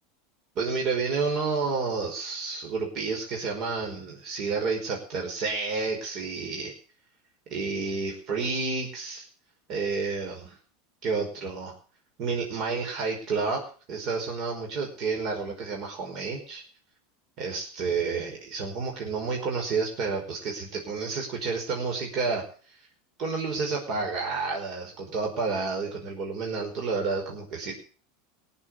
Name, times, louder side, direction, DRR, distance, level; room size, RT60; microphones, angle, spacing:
voice 1, 0.6-6.7 7.5-9.3 9.7-10.6 11.0-11.7 12.2-13.6 13.9-16.6 17.4-22.4 23.2-27.8, right 4 dB, 45° right, 1 dB, 5.2 m, -30 dB
18.5 x 7.4 x 8.1 m, 0.41 s
supercardioid pair, 125°, 0 cm